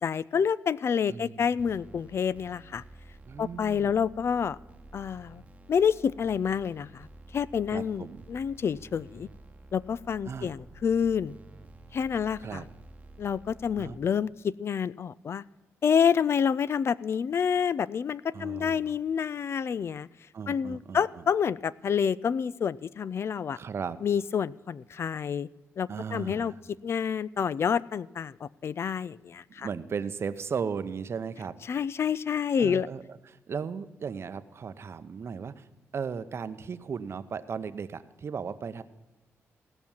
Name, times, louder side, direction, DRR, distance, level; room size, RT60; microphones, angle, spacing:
voice 1, 0.0-2.8 3.4-4.6 4.9-5.4 5.7-7.1 7.3-9.3 9.7-11.4 11.9-12.6 13.2-15.4 15.8-20.1 20.5-23.6 24.0-25.5 25.8-26.5 26.8-29.7 31.7-32.9, left 7 dB, 55° left, 20 dB, 0.3 m, -28 dB
voice 2, 1.1-1.5 3.2-4.0 7.7-8.2 10.3-10.5 12.4-12.6 13.8-14.0 18.3-18.9 20.3-21.2 23.5-24.0 25.9-26.6 29.6-31.5 32.6-35.7 35.9-38.8, right 6 dB, 55° right, 13 dB, 0.7 m, -36 dB
sound 1, 1.6-14.0, right 2 dB, 25° right, 1.0 m, -51 dB
17.0 x 6.0 x 7.1 m, 1.1 s
cardioid pair, 85°, 5 cm